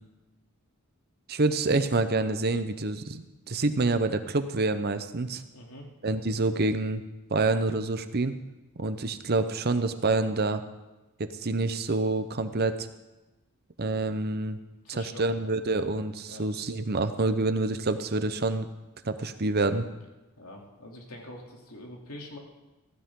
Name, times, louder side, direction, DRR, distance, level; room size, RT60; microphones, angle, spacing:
voice 1, 1.3-5.4 6.0-7.0 7.3-8.3 8.8-10.6 11.2-12.9 13.8-14.6 14.9-18.7 19.0-19.8, right 2 dB, 45° right, 10 dB, 0.8 m, -27 dB
voice 2, 5.5-5.9 14.8-15.5 16.3-16.4 20.4-22.4, left 1 dB, 80° left, 0 dB, 2.9 m, -44 dB
15.5 x 15.5 x 3.8 m, 1.1 s
head